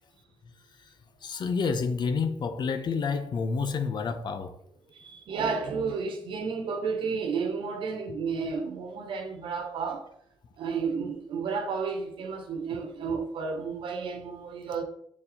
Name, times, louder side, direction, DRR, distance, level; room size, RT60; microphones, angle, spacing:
voice 1, 1.2-4.6, left 5 dB, 55° left, 0.8 m, -29 dB
voice 2, 4.9-10.0 10.6-14.8, right 5 dB, 75° right, 1.2 m, -32 dB
7.2 x 4.3 x 4.2 m
cardioid pair, 65°, 9 cm